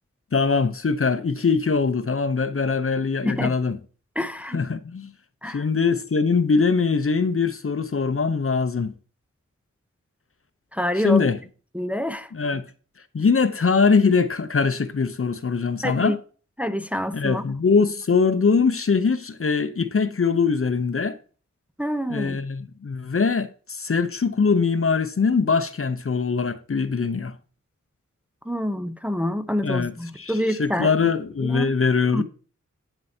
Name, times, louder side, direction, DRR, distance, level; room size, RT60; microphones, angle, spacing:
voice 1, 0.3-3.8 4.5-5.1 5.5-8.9 10.9-11.4 12.3-12.7 13.1-16.2 17.1-21.2 22.1-27.3 29.6-32.2, left 5 dB, 45° left, 0.7 m, -22 dB
voice 2, 3.2-3.5 4.2-4.6 5.4-5.6 10.7-11.3 11.7-12.3 15.8-16.2 16.6-17.4 21.8-22.4 28.5-30.9 31.4-31.7 32.1-32.2, equal, 5° right, 0.6 m, -27 dB
8.9 x 7.5 x 2.7 m
wide cardioid pair, 55°, 30 cm